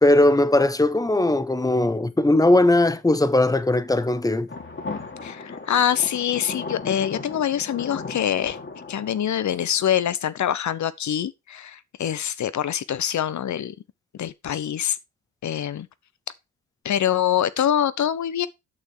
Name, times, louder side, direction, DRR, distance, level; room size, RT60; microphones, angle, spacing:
voice 1, 0.0-4.5, left 2 dB, 10° left, 1.1 m, -19 dB
sound 1, 4.5-9.9, left 4 dB, 35° left, 2.2 m, -36 dB
voice 2, 5.2-8.6 8.9-13.7 14.1-15.0 15.4-15.9 16.8-18.5, left 10 dB, 50° left, 0.9 m, -24 dB
8.7 x 6.4 x 4.6 m
supercardioid pair, 60°, 36 cm